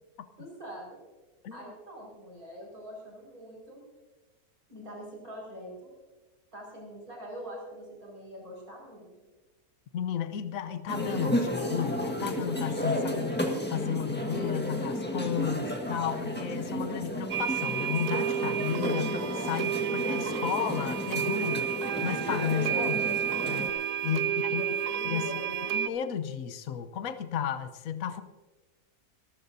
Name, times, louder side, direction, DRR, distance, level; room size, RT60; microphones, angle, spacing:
voice 1, 0.4-1.0 1.5-3.8 4.7-5.9 6.5-9.3 12.9-13.0 24.0-25.7, equal, 60° right, -2 dB, 5.8 m, -44 dB
voice 2, 9.9-21.7 22.0-24.6 25.0-25.3 25.7-28.2, left 9 dB, 65° left, 10 dB, 1.2 m, -33 dB
sound 1, 10.9-23.7, left 1 dB, 5° left, 1.5 m, -32 dB
sound 2, 17.3-25.9, right 9 dB, 85° right, 1.3 m, -31 dB
25.0 x 15.0 x 2.7 m, 1.2 s
omnidirectional pair, 1.7 m